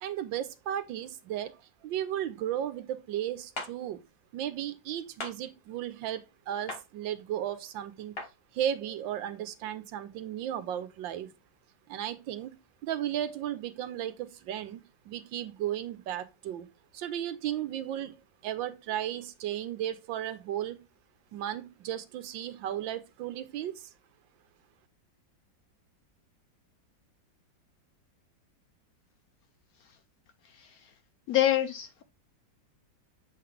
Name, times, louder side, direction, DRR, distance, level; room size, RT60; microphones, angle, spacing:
voice 1, 0.0-4.0 4.3-8.2 8.5-11.3 11.9-12.5 12.8-16.7 16.9-20.8 21.3-23.9, right 11 dB, 90° right, 1.5 m, -35 dB
sound 1, 3.6-3.7 5.2-5.4 6.7-6.8 8.2-8.3, left 2 dB, 35° left, 1.3 m, -37 dB
voice 2, 31.3-32.0, left 12 dB, 75° left, 0.8 m, -26 dB
7.3 x 3.9 x 3.3 m
omnidirectional pair, 2.0 m